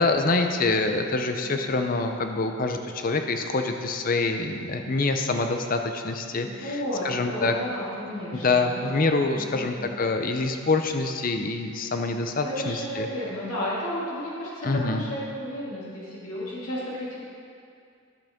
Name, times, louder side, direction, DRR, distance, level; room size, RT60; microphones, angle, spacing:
voice 1, 0.0-6.8 7.0-7.6 8.3-13.1 14.6-15.0, left 3 dB, 40° left, 5 dB, 0.6 m, -25 dB
voice 2, 1.4-2.1 6.4-9.1 9.3-10.0 12.4-17.2, equal, 85° left, -7 dB, 2.1 m, -33 dB
12.0 x 7.6 x 3.6 m, 2.4 s
head